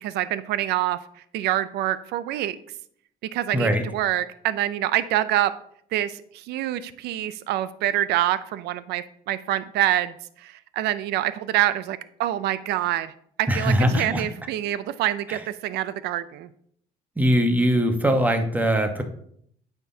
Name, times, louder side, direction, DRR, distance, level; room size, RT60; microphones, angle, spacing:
voice 1, 0.0-1.0 1.3-2.6 3.3-5.5 5.9-13.1 13.4-16.5, right 13 dB, 80° right, 15 dB, 0.5 m, -26 dB
voice 2, 3.5-3.8 13.5-14.2 17.2-19.0, equal, 10° right, 6 dB, 1.1 m, -21 dB
9.2 x 5.9 x 2.8 m, 0.65 s
cardioid pair, 110°, 17 cm